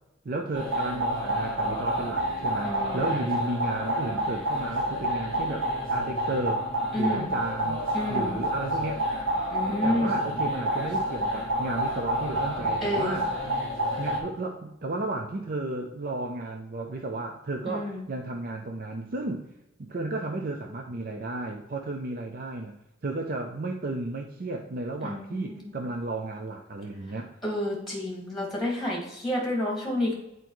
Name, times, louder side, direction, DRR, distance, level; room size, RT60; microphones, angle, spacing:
voice 1, 0.2-6.7 7.0-9.0 9.7-13.3 14.0-19.4 19.8-22.7 23.0-27.3, right 2 dB, 45° right, 3 dB, 0.5 m, -33 dB
sound 1, 0.5-14.2, right 1 dB, 85° right, 1.9 m, -29 dB
voice 2, 2.6-3.1 6.9-7.3 7.9-8.4 9.5-10.2 12.8-13.2 17.7-18.1 25.0-25.8 27.4-30.1, left 1 dB, ahead, -2 dB, 1.9 m, -30 dB
9.1 x 4.5 x 3.1 m, 0.91 s
head